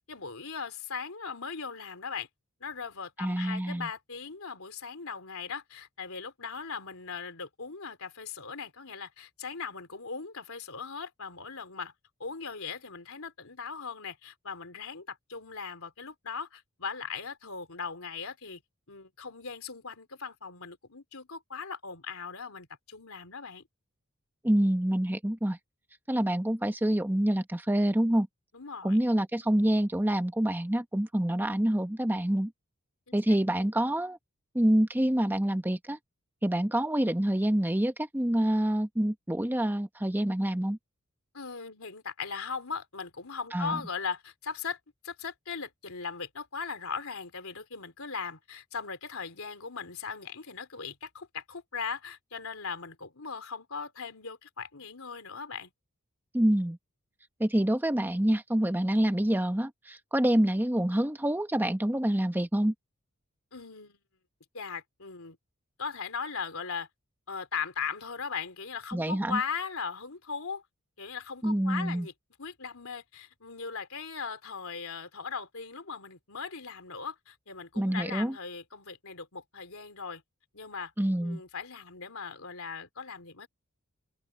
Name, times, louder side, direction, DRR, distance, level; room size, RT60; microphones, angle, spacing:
voice 1, 0.1-2.3 2.6-11.9 12.2-18.6 18.9-23.6 28.5-29.0 33.1-33.2 33.5-33.7 41.3-55.7 63.5-64.0 64.5-65.4 65.8-66.9 67.3-70.6 71.0-72.1 72.4-80.2 80.5-80.9 81.2-83.5, left 5 dB, 75° left, 3.5 m, -39 dB
voice 2, 3.2-3.9 24.4-25.6 26.1-28.3 28.8-32.5 33.1-34.2 34.5-36.0 36.4-40.8 43.5-43.8 56.3-56.8 57.4-62.7 68.9-69.4 71.4-72.1 77.8-78.3 81.0-81.4, right 1 dB, 10° right, 0.9 m, -27 dB
open air
head